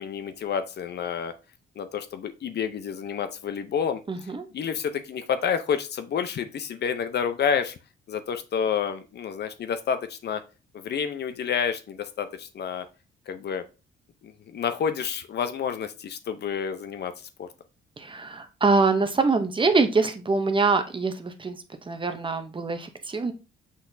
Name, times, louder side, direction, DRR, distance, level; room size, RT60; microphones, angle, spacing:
voice 1, 0.0-1.3 1.8-4.0 4.5-7.7 8.1-10.4 10.7-12.8 13.3-13.6 14.5-17.1 17.4-17.5, left 7 dB, 55° left, 10 dB, 0.8 m, -29 dB
voice 2, 4.1-4.5 18.0-23.3, right 4 dB, 25° right, 8 dB, 0.8 m, -24 dB
6.3 x 5.7 x 2.7 m, 0.31 s
cardioid pair, 90°, 20 cm